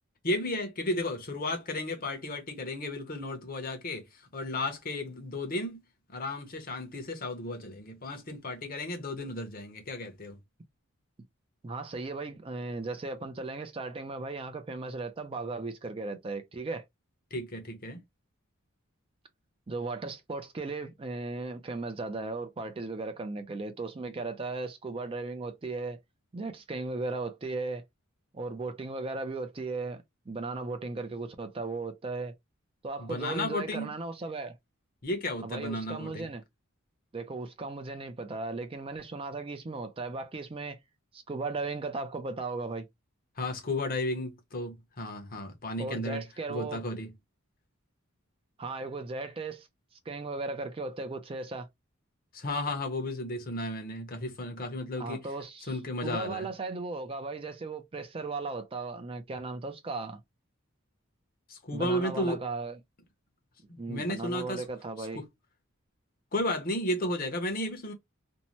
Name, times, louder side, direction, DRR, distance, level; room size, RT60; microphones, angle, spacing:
voice 1, 0.2-5.8 6.1-10.4 17.3-18.0 33.0-34.0 35.0-36.3 43.4-46.2 46.5-47.1 52.3-55.3 55.7-56.5 61.5-62.4 63.7-64.7 65.0-65.3 66.3-67.9, left 1 dB, 45° left, 0.8 m, -34 dB
voice 2, 11.6-16.8 19.7-26.0 26.3-27.8 28.3-32.3 32.8-34.6 35.4-36.4 37.1-40.8 41.1-42.9 45.8-46.8 48.6-49.7 50.1-51.7 55.0-55.7 56.0-60.2 61.7-62.8 63.8-65.2, right 3 dB, 25° right, 0.4 m, -36 dB
2.7 x 2.1 x 2.9 m
head